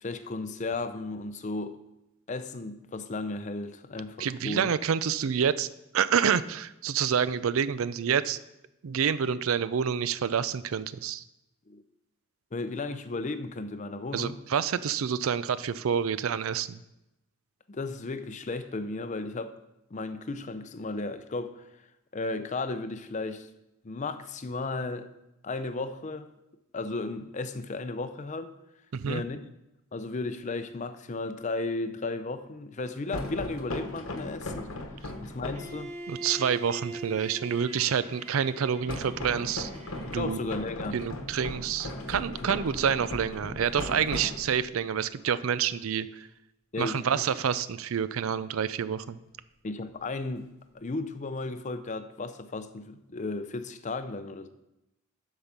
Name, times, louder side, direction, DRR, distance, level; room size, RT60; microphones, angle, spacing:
voice 1, 0.0-1.8 2.3-4.7 11.7-11.8 12.5-14.3 17.7-19.5 19.9-21.7 22.1-23.5 23.8-25.1 25.4-26.3 26.7-28.5 29.0-29.4 29.9-34.7 35.2-35.9 40.1-41.0 42.4-42.5 46.7-47.2 49.6-50.5 50.7-54.5, left 3 dB, 35° left, 11 dB, 0.5 m, -34 dB
voice 2, 4.2-5.7 5.9-8.4 8.8-11.2 14.1-16.8 28.9-29.2 36.1-39.7 40.1-40.4 40.9-46.3 46.8-49.2, right 7 dB, 80° right, 16 dB, 0.4 m, -28 dB
sound 1, 33.1-35.8 38.9-44.8, left 2 dB, 90° left, 1.2 m, -37 dB
Bowed string instrument, 35.5-40.5, right 2 dB, 30° right, 1.0 m, -42 dB
8.5 x 5.6 x 6.0 m, 0.90 s
head